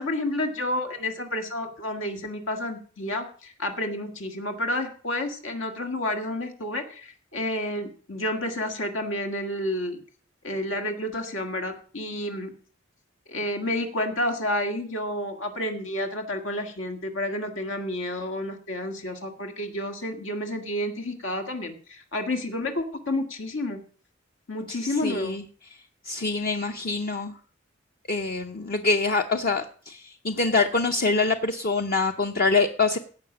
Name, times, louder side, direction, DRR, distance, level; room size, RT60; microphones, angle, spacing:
voice 1, 0.0-10.0 10.4-12.5 13.3-23.8 24.5-25.4, left 1 dB, 85° left, 5 dB, 1.8 m, -30 dB
voice 2, 24.7-25.4 26.0-27.3 28.1-33.0, left 3 dB, 50° left, 5 dB, 0.7 m, -25 dB
16.5 x 5.8 x 6.0 m, 0.43 s
head